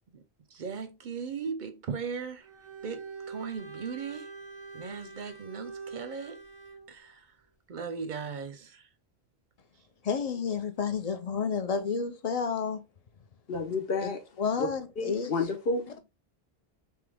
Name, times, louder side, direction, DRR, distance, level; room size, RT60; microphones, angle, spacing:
voice 1, 0.5-2.5 2.8-4.3 4.7-6.4 6.9-7.3 7.7-8.9, right 6 dB, 55° right, 0.6 m, -38 dB
Bowed string instrument, 2.4-6.9, right 4 dB, 10° left, 1.1 m, -44 dB
voice 2, 10.0-12.8 14.0-15.3, left 6 dB, 45° left, 0.6 m, -31 dB
voice 3, 13.5-14.2 14.6-14.7 15.0-16.0, left 3 dB, 70° left, 1.1 m, -30 dB
3.5 x 2.9 x 3.4 m
omnidirectional pair, 1.0 m